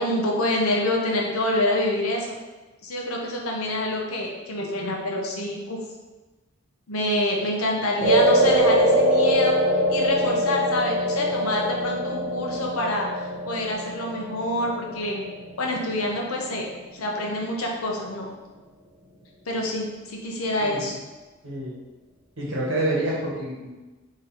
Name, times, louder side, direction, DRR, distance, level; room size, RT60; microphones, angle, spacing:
voice 1, 0.0-2.4 2.8-5.8 6.9-9.6 9.9-15.3 15.6-16.7 17.0-18.3 19.5-20.9, left 1 dB, 90° left, 0 dB, 0.9 m, -26 dB
sound 1, 8.0-16.5, equal, 45° right, 1.5 m, -23 dB
voice 2, 21.4-21.8 22.4-23.7, right 1 dB, 65° right, -4 dB, 1.4 m, -27 dB
4.0 x 3.1 x 4.2 m, 1.2 s
head